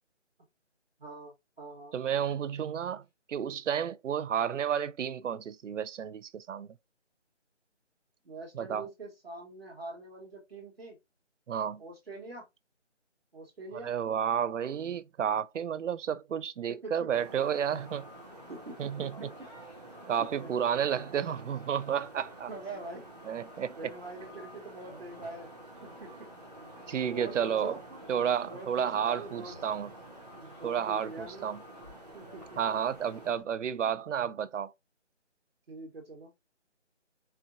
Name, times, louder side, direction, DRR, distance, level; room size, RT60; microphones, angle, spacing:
voice 1, 1.0-1.9 8.2-11.0 11.8-12.4 13.3-13.9 16.7-16.9 18.5-19.1 19.4-19.5 20.4-20.5 20.9-21.0 22.5-23.0 23.8-25.5 25.8-26.1 26.5-26.6 27.1-28.0 28.4-29.6 30.3-31.5 32.1-32.6 35.7-36.3, right 2 dB, 55° right, 1.3 m, -44 dB
voice 2, 1.9-3.0 3.3-6.7 8.5-8.9 11.5-11.8 13.8-18.1 18.8-19.3 20.1-22.5 23.3-23.7 26.9-27.8 28.1-29.9 30.6-31.6 32.6-34.7, right 8 dB, 85° right, 0.5 m, -31 dB
sound 1, 17.1-33.3, right 1 dB, 35° right, 0.7 m, -49 dB
sound 2, 17.3-33.4, equal, 30° left, 1.3 m, -57 dB
4.3 x 2.4 x 2.5 m
figure-of-eight pair, 175°, 36 cm